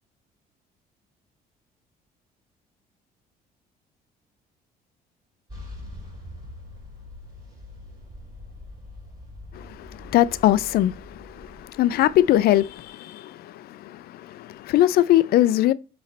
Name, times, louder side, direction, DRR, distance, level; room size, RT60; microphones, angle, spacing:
sound 1, 5.5-12.9, left 1 dB, 25° right, 3.8 m, -43 dB
voice 1, 9.5-15.7, left 13 dB, 65° left, 0.4 m, -22 dB
7.9 x 3.2 x 4.0 m
cardioid pair, 110°, 17 cm